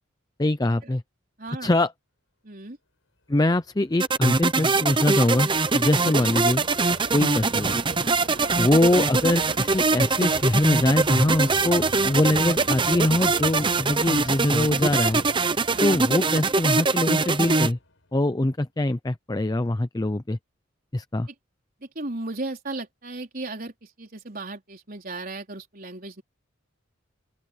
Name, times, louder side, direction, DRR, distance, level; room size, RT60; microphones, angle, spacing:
voice 1, 0.4-1.0 1.6-1.9 3.3-6.6 7.1-7.8 8.6-15.2 15.8-17.8 18.1-20.4 20.9-21.3, left 1 dB, 20° left, 0.6 m, -23 dB
voice 2, 1.4-1.7 2.4-2.8 6.0-6.3 8.3-8.6 15.7-16.0 21.9-26.2, right 2 dB, 45° right, 4.3 m, -36 dB
sound 1, 3.6-18.1, left 1 dB, 75° left, 6.0 m, -44 dB
sound 2, 4.0-17.7, right 4 dB, 25° right, 0.8 m, -23 dB
open air
head